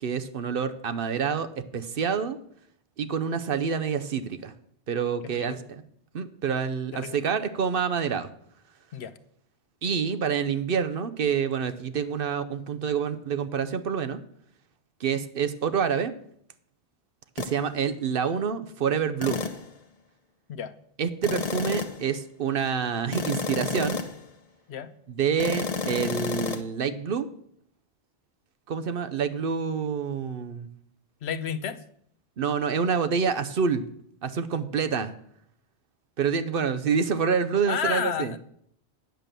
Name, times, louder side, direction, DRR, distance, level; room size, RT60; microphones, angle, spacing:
voice 1, 0.0-2.4 3.0-4.5 4.9-5.8 6.1-8.3 9.8-14.2 15.0-16.1 17.4-19.4 21.0-24.0 25.1-27.3 28.7-30.7 32.4-33.8 34.2-35.1 36.2-38.3, right 6 dB, 60° right, 11 dB, 0.8 m, -27 dB
voice 2, 5.2-5.6 6.9-7.2 8.9-9.1 20.5-20.7 24.7-24.9 31.2-31.8 37.7-38.4, left 8 dB, 75° left, 12 dB, 0.9 m, -31 dB
sound 1, 17.4-17.6 19.2-19.7 21.2-22.1 23.1-24.2 25.4-26.6, left 5 dB, 40° left, 0.8 m, -30 dB
9.1 x 7.4 x 6.7 m, 0.68 s
omnidirectional pair, 1.1 m